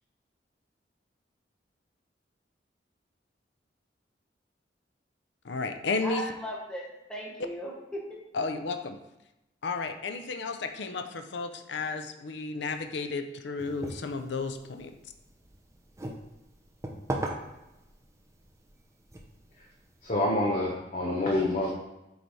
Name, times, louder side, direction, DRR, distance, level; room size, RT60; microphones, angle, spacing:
voice 1, 5.4-6.2 8.3-9.0 9.6-14.9, left 4 dB, 75° left, 7 dB, 0.5 m, -33 dB
voice 2, 6.0-8.2, equal, 5° left, -4 dB, 1.1 m, -37 dB
sound 1, 13.6-20.1, right 1 dB, 15° right, 0.7 m, -40 dB
voice 3, 20.0-21.7, left 1 dB, 45° left, -3 dB, 0.9 m, -27 dB
7.8 x 3.3 x 4.1 m, 0.94 s
head